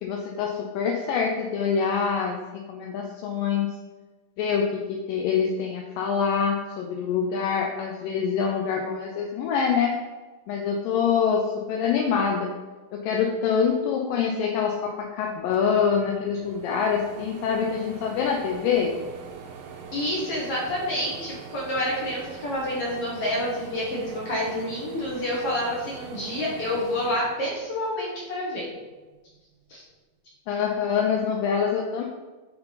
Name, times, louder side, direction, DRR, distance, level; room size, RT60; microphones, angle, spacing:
voice 1, 0.0-2.4 2.7-3.7 4.4-10.0 10.5-12.5 12.9-18.9 30.5-32.0, left 6 dB, 80° left, 0 dB, 2.2 m, -25 dB
sound 1, 15.2-15.3 15.5-28.1 28.6-29.7, right 6 dB, 80° right, 2.4 m, -43 dB
voice 2, 19.9-28.6 29.7-29.8, left 1 dB, 60° left, -4 dB, 1.7 m, -28 dB
9.6 x 3.9 x 4.0 m, 1.2 s
omnidirectional pair, 4.1 m